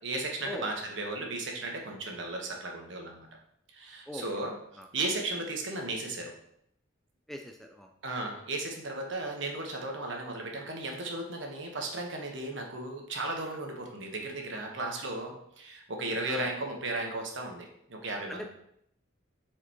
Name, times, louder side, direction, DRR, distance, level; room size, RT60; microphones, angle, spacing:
voice 1, 0.0-3.3 3.7-4.6 4.9-6.3 8.0-18.5, right 2 dB, 65° right, 1 dB, 1.2 m, -35 dB
voice 2, 7.3-7.9 16.3-16.5 18.3-18.4, left 1 dB, ahead, 3 dB, 0.4 m, -40 dB
7.9 x 4.9 x 3.0 m, 0.73 s
head